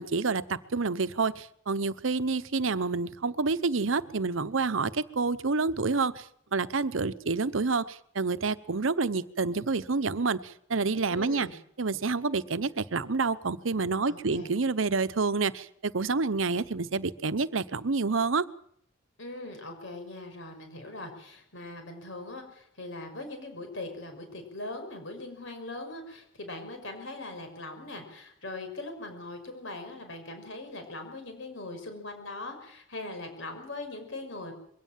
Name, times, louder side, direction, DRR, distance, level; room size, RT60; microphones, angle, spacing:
voice 1, 0.0-6.2 6.5-11.5 11.8-18.4, right 4 dB, 85° right, 15 dB, 0.9 m, -28 dB
voice 2, 11.1-11.5 14.1-14.5 19.2-34.5, left 2 dB, 70° left, 6 dB, 5.8 m, -41 dB
22.5 x 16.5 x 7.5 m, 0.69 s
head